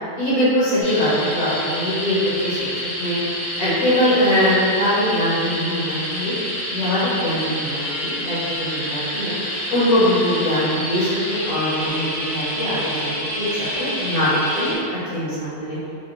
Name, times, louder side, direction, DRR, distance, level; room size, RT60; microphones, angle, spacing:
voice 1, 0.2-2.2 2.4-2.7 3.0-3.2 3.6-6.3 6.7-9.3 9.7-15.8, equal, 70° left, -11 dB, 1.7 m, -22 dB
sound 1, 0.8-14.7, equal, 15° left, 0.8 m, -28 dB
4.9 x 2.3 x 3.0 m, 2.4 s
omnidirectional pair, 1.6 m